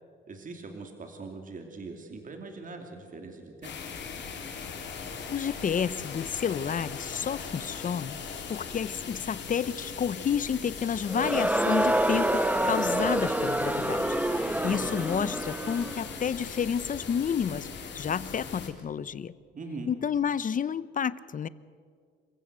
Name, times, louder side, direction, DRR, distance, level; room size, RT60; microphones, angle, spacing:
voice 1, 0.3-3.7 14.6-15.0 19.5-19.9, right 3 dB, 40° right, 4 dB, 2.7 m, -41 dB
sound 1, 3.6-18.7, left 6 dB, 65° left, 3.6 m, -40 dB
voice 2, 5.3-8.2 8.5-14.1 14.4-19.3 19.9-21.5, left 7 dB, 40° left, 18 dB, 0.8 m, -30 dB
Crowd, 11.1-16.1, right 1 dB, 5° right, 1.2 m, -27 dB
27.5 x 15.5 x 8.1 m, 2.1 s
cardioid pair, 90°, 20 cm